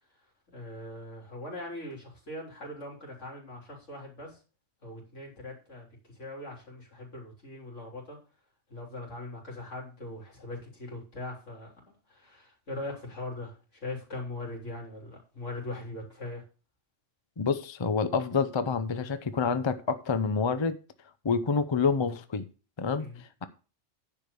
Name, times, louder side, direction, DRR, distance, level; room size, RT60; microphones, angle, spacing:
voice 1, 0.5-4.4 4.8-8.2 8.7-16.4 23.0-23.2, left 2 dB, 80° left, 3.8 m, -41 dB
voice 2, 17.4-20.8 21.2-22.4 22.8-23.1, left 5 dB, 30° left, 0.6 m, -27 dB
10.0 x 5.0 x 6.9 m
omnidirectional pair, 1.2 m